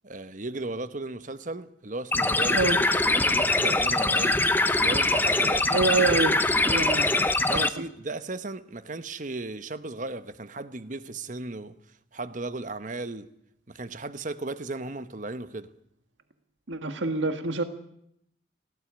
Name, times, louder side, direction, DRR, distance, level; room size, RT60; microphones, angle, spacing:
voice 1, 0.0-4.4 4.8-5.8 7.4-11.7 12.1-13.3 13.7-15.7, right 2 dB, 45° right, 1.1 m, -35 dB
sound 1, 2.1-7.7, left 2 dB, 10° left, 0.7 m, -23 dB
voice 2, 5.7-6.4 6.6-7.1 7.5-7.6 16.7-17.6, right 3 dB, 85° right, 1.7 m, -26 dB
18.0 x 16.0 x 8.8 m
head